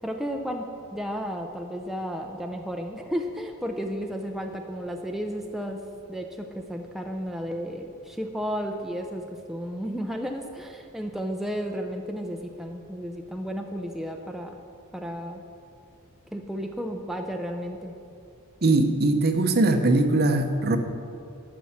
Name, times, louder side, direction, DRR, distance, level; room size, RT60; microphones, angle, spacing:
voice 1, 0.0-5.8 6.1-14.6 14.9-15.4 16.3-17.9, equal, ahead, 3 dB, 0.5 m, -33 dB
voice 2, 18.6-20.8, right 2 dB, 45° right, 7 dB, 0.8 m, -21 dB
12.0 x 6.2 x 7.2 m, 2.5 s
head